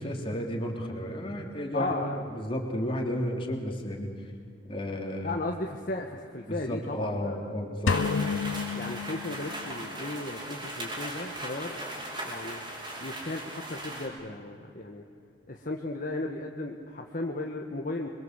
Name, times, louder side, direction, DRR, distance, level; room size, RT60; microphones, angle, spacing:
voice 1, 0.0-4.3 4.6-5.3 6.5-8.0, equal, 25° left, 1 dB, 3.4 m, -33 dB
voice 2, 1.7-2.3 5.2-7.5 8.7-11.8 12.2-12.6 13.0-15.0 15.5-18.1, left 2 dB, 45° left, 2 dB, 1.5 m, -35 dB
sound 1, 7.9-9.9, left 5 dB, 75° left, 0.6 m, -30 dB
sound 2, 7.9-14.1, right 1 dB, 25° right, 5.2 m, -38 dB
26.5 x 23.0 x 8.2 m, 2.3 s
head